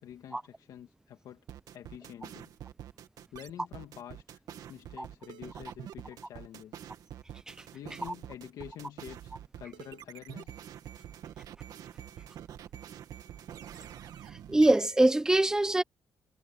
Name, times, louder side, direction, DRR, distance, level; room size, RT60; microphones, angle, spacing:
voice 1, 0.0-1.4 1.7-2.5 3.3-4.4 4.7-6.9 7.7-10.6, left 10 dB, 70° left, 2.5 m, -47 dB
sound 1, 1.5-15.0, right 10 dB, 70° right, 2.4 m, -46 dB
voice 2, 14.5-15.8, right 2 dB, 10° right, 1.0 m, -23 dB
cardioid pair, 165°, 7 cm